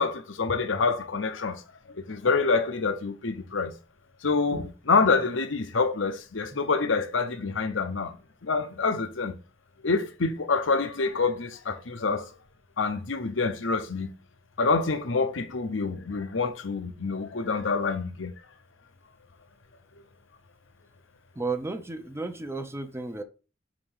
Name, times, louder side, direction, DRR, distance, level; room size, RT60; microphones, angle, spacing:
voice 1, 0.0-1.6 1.9-3.7 4.2-8.2 8.4-9.3 9.8-12.3 12.8-14.1 14.6-18.3, left 4 dB, 80° left, 0.9 m, -26 dB
voice 2, 21.4-23.2, right 3 dB, 15° right, 0.6 m, -33 dB
5.9 x 5.0 x 5.6 m
head